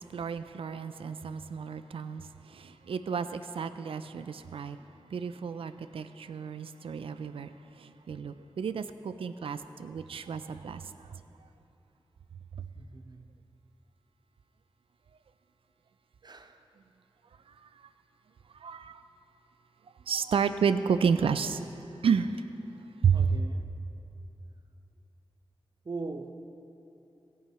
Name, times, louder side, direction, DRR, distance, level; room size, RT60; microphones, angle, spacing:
voice 1, 0.0-2.2 2.5-4.8 5.1-7.5 7.8-10.8 18.6-19.0 20.1-21.6 22.0-22.3 23.0-23.3, right 6 dB, 80° right, 11 dB, 0.4 m, -31 dB
voice 2, 12.7-13.6 16.2-16.7 23.1-23.7 25.8-26.3, right 3 dB, 50° right, 7 dB, 0.7 m, -41 dB
17.0 x 9.4 x 3.0 m, 3.0 s
cardioid pair, 45°, 9 cm